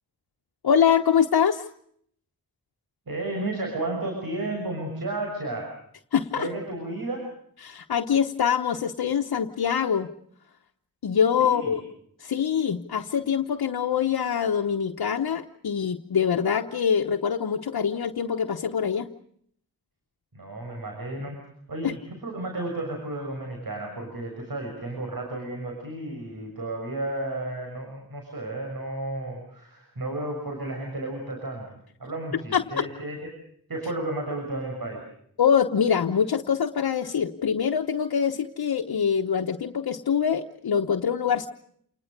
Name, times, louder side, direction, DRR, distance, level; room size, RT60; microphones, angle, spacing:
voice 1, 0.6-1.7 6.1-6.5 7.6-10.1 11.0-11.8 12.2-19.1 21.8-21.9 32.5-32.8 35.4-41.5, left 7 dB, 90° left, 3 dB, 1.0 m, -24 dB
voice 2, 3.1-5.7 6.4-7.2 11.4-11.8 20.3-21.4 21.7-31.7 32.0-33.2 33.7-35.0, right 2 dB, 70° right, 2 dB, 6.5 m, -32 dB
28.5 x 20.0 x 6.7 m, 0.66 s
cardioid pair, 50°, 36 cm